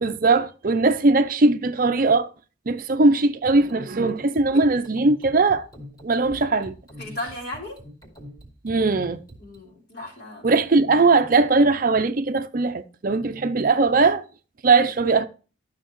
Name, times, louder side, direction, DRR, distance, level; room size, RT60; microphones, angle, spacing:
voice 1, 0.0-2.3 2.7-5.7 6.0-6.7 8.6-9.2 10.4-14.2 14.6-15.3, right 3 dB, 45° right, 0.5 m, -20 dB
sound 1, 3.4-9.6, left 1 dB, 20° left, 2.5 m, -43 dB
voice 2, 7.0-7.8 9.4-10.6, left 1 dB, 50° left, 3.5 m, -35 dB
12.0 x 6.4 x 3.1 m
head